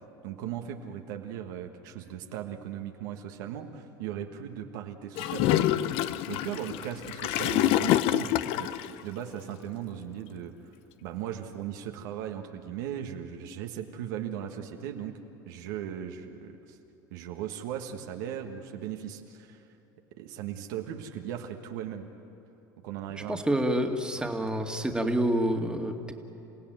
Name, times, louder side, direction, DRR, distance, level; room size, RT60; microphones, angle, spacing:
voice 1, 0.2-5.9 6.3-8.7 9.0-10.5 11.0-15.2 15.5-16.8 17.1-19.6 20.2-22.1 22.8-23.6 24.1-24.3, right 9 dB, 80° right, 4 dB, 1.6 m, -38 dB
Gurgling / Toilet flush, 5.2-8.9, left 13 dB, 65° left, 0.7 m, -26 dB
voice 2, 23.3-26.1, right 1 dB, 10° right, 4 dB, 2.1 m, -28 dB
29.0 x 16.0 x 9.2 m, 2.9 s
supercardioid pair, 90°, 10 cm